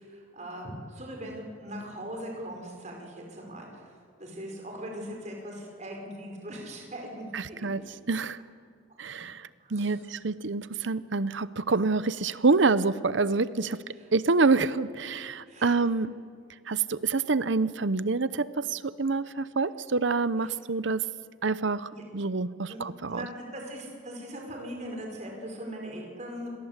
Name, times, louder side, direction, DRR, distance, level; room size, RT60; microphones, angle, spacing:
voice 1, 0.0-7.6 9.6-10.2 13.9-14.1 15.5-15.8 20.4-20.5 21.8-22.0 22.7-22.8 23.1-26.5, equal, 35° right, 1 dB, 5.2 m, -40 dB
voice 2, 7.3-7.8 8.1-8.4 9.0-9.4 9.7-13.8 14.1-16.1 16.7-21.0 21.4-23.2, right 4 dB, 65° right, 16 dB, 0.8 m, -27 dB
28.0 x 21.5 x 8.2 m, 2.1 s
head